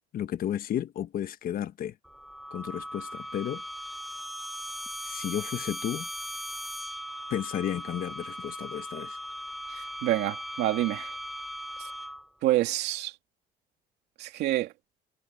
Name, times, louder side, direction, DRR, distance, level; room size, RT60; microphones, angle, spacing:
voice 1, 0.1-1.9 2.5-3.6 5.0-6.1 7.3-9.2, left 10 dB, 60° left, 1.5 m, -33 dB
sound 1, 2.0-12.4, equal, ahead, 2.8 m, -39 dB
voice 2, 9.7-11.1 12.4-13.1 14.2-14.7, right 15 dB, 85° right, 2.7 m, -27 dB
cardioid pair, 110°, 17 cm